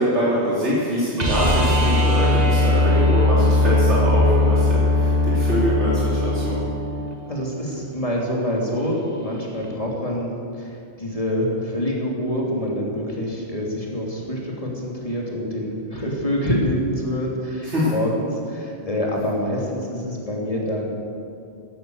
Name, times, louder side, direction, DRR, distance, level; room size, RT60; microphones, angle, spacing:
voice 1, 0.0-6.6 17.6-17.9, equal, 90° right, -8 dB, 3.5 m, -24 dB
sound 1, 1.2-7.2 9.6-9.7, left 1 dB, 40° right, 1.6 m, -19 dB
voice 2, 7.3-20.9, equal, 30° left, -2 dB, 3.0 m, -26 dB
13.5 x 12.5 x 7.9 m, 2.5 s
omnidirectional pair, 1.1 m